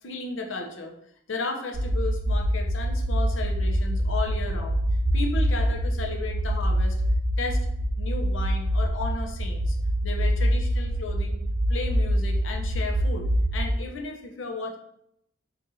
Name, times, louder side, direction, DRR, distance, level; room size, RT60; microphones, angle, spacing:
voice 1, 0.0-1.0 1.3-4.8 5.1-7.0 7.4-7.7 8.0-9.8 10.0-11.4 11.7-14.8, left 3 dB, 80° left, 2 dB, 0.7 m, -34 dB
sound 1, 1.7-13.7, equal, 65° right, 0.8 m, -25 dB
5.2 x 2.5 x 2.7 m, 0.75 s
head